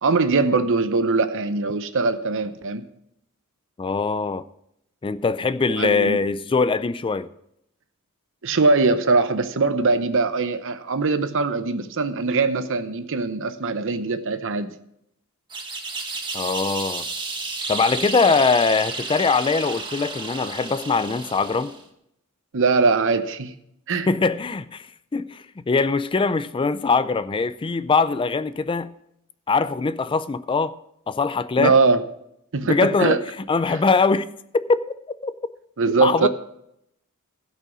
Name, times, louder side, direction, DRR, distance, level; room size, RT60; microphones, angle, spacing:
voice 1, 0.0-2.9 5.8-6.2 8.4-14.7 22.5-23.5 23.9-24.1 31.6-32.0 32.5-33.2 33.7-33.8 35.8-36.3, right 3 dB, 60° right, 0.8 m, -21 dB
voice 2, 3.8-4.4 5.0-7.3 16.3-17.1 17.7-21.7 24.1-24.9 25.1-28.9 29.5-30.7 31.1-31.7 32.6-33.2 33.5-34.3 34.5-34.8 35.2-35.3 36.0-36.3, left 4 dB, 25° left, 0.4 m, -22 dB
sound 1, 15.5-21.9, right 3 dB, 20° right, 1.4 m, -32 dB
16.0 x 5.5 x 6.1 m
head